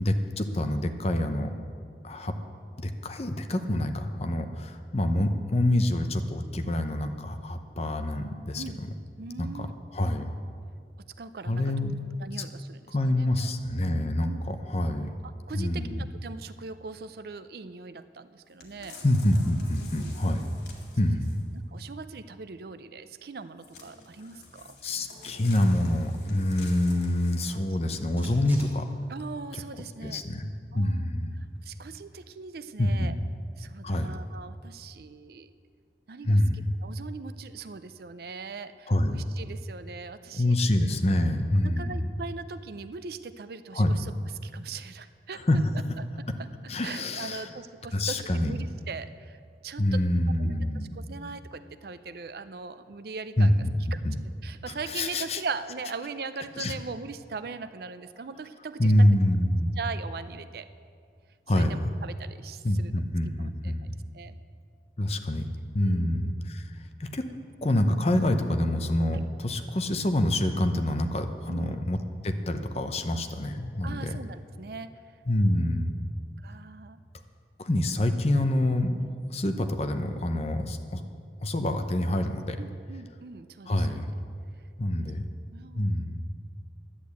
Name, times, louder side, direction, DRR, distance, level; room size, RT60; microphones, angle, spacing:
voice 1, 0.0-1.5 2.0-2.3 2.8-8.6 9.4-9.7 9.9-10.2 11.5-11.9 12.4-12.5 12.9-15.1 15.5-16.0 19.0-20.6 21.0-21.4 24.8-28.8 30.0-30.5 30.7-31.4 32.8-33.2 33.8-34.1 36.3-36.6 38.9-39.2 40.3-42.0 43.7-43.9 45.5-45.6 46.7-47.5 47.9-48.5 49.8-51.3 53.4-54.2 54.7-55.4 56.6-56.7 58.8-59.8 61.5-62.0 62.6-64.0 65.0-65.4 65.7-66.7 67.0-67.2 67.6-72.0 72.2-74.2 75.3-76.1 77.6-79.0 79.3-81.0 81.4-82.6 83.7-84.0 84.8-85.2 85.7-86.2, left 1 dB, 35° left, 7 dB, 0.7 m, -26 dB
voice 2, 9.2-9.7 11.2-11.6 12.2-13.5 14.3-14.5 15.2-19.0 19.8-20.1 21.5-24.8 28.2-28.4 29.1-30.2 30.7-33.1 33.6-35.5 36.1-36.4 36.8-40.6 41.6-44.1 44.4-45.4 46.0-46.1 46.4-46.5 46.8-50.0 50.4-50.5 50.9-53.7 53.9-54.2 54.4-59.1 59.7-60.7 61.5-63.0 63.4-63.8 64.1-64.4 65.8-66.1 69.1-69.2 71.5-71.8 73.8-74.9 75.5-75.6 76.4-77.0 79.0-79.1 82.6-84.1 85.5-85.9, right 4 dB, 60° right, 12 dB, 0.5 m, -40 dB
sound 1, 18.6-21.6 23.6-27.8 28.3-28.4, left 2 dB, 70° left, 2.2 m, -48 dB
sound 2, 27.3-29.6 30.0-30.1 30.3-32.3, right 1 dB, 10° right, 2.5 m, -53 dB
11.0 x 8.3 x 8.4 m, 2.2 s
head